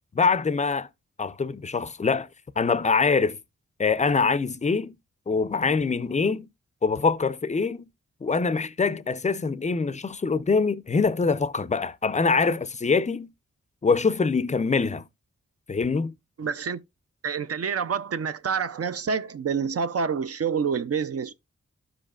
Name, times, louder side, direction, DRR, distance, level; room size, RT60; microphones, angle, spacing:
voice 1, 0.1-0.9 1.2-2.3 2.6-3.4 3.8-5.0 5.3-6.5 6.8-7.9 8.2-13.3 13.8-15.1 15.7-16.1, left 4 dB, 25° left, 0.4 m, -24 dB
voice 2, 16.4-16.8 17.2-21.3, right 6 dB, 55° right, 0.5 m, -27 dB
13.5 x 5.0 x 2.4 m
wide cardioid pair, 85°, 30 cm